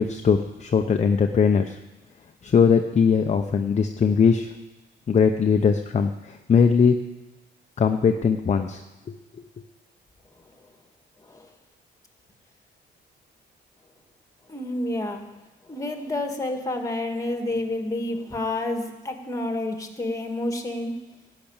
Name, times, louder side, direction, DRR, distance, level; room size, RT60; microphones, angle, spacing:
voice 1, 0.0-1.8 2.4-4.5 5.1-7.0 7.8-8.8 9.1-9.2, left 6 dB, 35° left, 5 dB, 0.7 m, -20 dB
voice 2, 14.5-15.2 15.7-20.9, left 1 dB, 15° left, 5 dB, 1.9 m, -29 dB
12.0 x 6.1 x 8.8 m, 1.1 s
cardioid pair, 90°, 20 cm